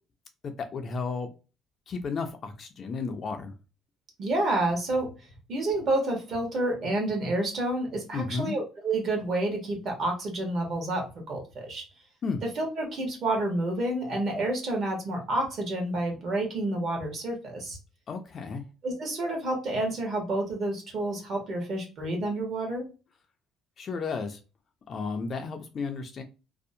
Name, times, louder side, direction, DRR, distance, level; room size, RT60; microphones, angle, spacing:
voice 1, 0.4-1.3 1.9-3.5 8.1-8.6 12.2-12.4 18.1-18.6 23.8-24.4 24.9-26.2, left 4 dB, 30° left, 6 dB, 0.3 m, -33 dB
voice 2, 4.2-5.1 5.5-11.8 12.6-17.8 18.8-22.9, right 2 dB, 40° right, 1 dB, 0.9 m, -29 dB
2.6 x 2.0 x 2.5 m, 0.31 s
cardioid pair, 165°, 0 cm